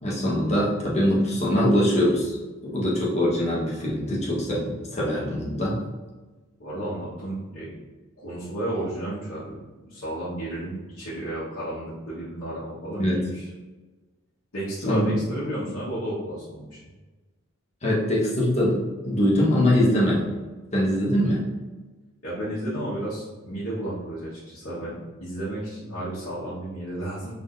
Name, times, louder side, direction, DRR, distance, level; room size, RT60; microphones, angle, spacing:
voice 1, 0.0-2.4 2.6-5.8 13.0-13.2 14.9-15.1 17.8-18.8 19.0-20.3 20.7-21.4, equal, 30° left, -5 dB, 1.1 m, -22 dB
voice 2, 6.6-7.7 8.2-9.6 9.9-13.5 14.5-16.8 22.2-27.3, right 1 dB, 85° left, -10 dB, 1.3 m, -32 dB
4.5 x 3.8 x 2.6 m, 1.2 s
head